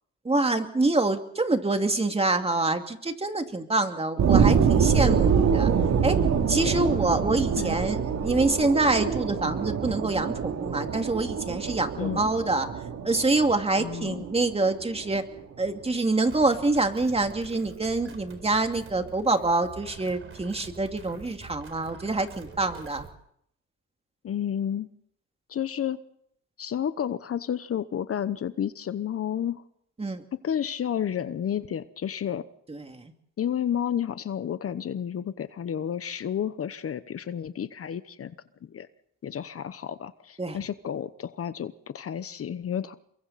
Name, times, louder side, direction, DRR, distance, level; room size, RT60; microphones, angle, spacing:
voice 1, 0.2-5.7 6.0-6.2 6.5-12.7 13.0-15.2 15.6-23.1 30.0-30.2 32.7-33.1 40.4-40.6, right 2 dB, 20° right, 6 dB, 2.4 m, -26 dB
sound 1, 4.2-15.2 15.7-15.8, right 6 dB, 65° right, 2.9 m, -25 dB
voice 2, 13.8-14.3 24.2-24.9 25.5-26.0 26.6-29.6 30.4-32.4 33.4-38.3 38.6-38.9 39.2-42.9, left 9 dB, 50° left, 13 dB, 1.0 m, -31 dB
sound 2, 16.3-23.1, right 5 dB, 45° right, 4.3 m, -45 dB
29.0 x 23.5 x 4.2 m, 0.70 s
cardioid pair, 90°, 30 cm